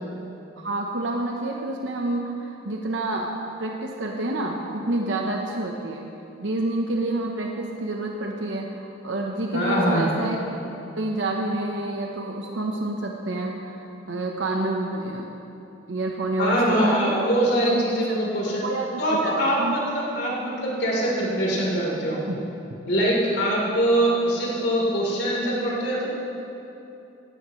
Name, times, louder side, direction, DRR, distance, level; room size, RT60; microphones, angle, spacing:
voice 1, 0.6-3.3 3.6-6.1 6.4-10.4 10.9-15.3 15.9-17.1 17.7-18.0 18.6-19.8 22.3-22.4, right 2 dB, 85° right, 0 dB, 1.0 m, -28 dB
voice 2, 9.5-10.0 16.4-18.6 19.0-22.2 22.9-26.1, right 1 dB, 70° left, -4 dB, 3.8 m, -23 dB
17.0 x 16.0 x 3.2 m, 2.9 s
head